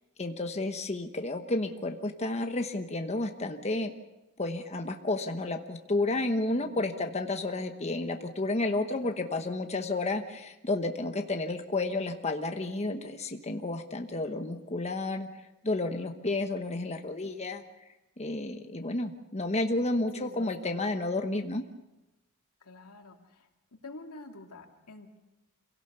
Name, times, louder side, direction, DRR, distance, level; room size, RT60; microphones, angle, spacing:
voice 1, 0.2-3.9 4.4-17.6 18.2-21.6, left 2 dB, 30° left, 5 dB, 1.1 m, -31 dB
voice 2, 6.6-7.1 9.0-9.3 16.1-16.6 20.1-21.0 22.6-23.5 23.8-25.2, left 2 dB, 85° left, 3 dB, 2.6 m, -49 dB
27.0 x 17.5 x 6.9 m, 0.97 s
head